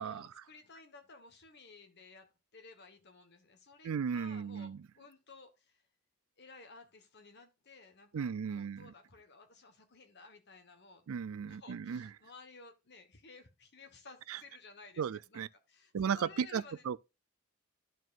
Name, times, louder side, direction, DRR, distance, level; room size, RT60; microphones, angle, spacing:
voice 1, 0.0-5.8 6.4-11.1 11.4-16.8, left 4 dB, 50° left, 1.3 m, -56 dB
voice 2, 3.8-4.8 8.1-8.9 11.1-12.1 14.3-14.4 15.0-15.5 15.9-17.0, right 7 dB, 75° right, 0.4 m, -35 dB
12.5 x 4.6 x 2.5 m
head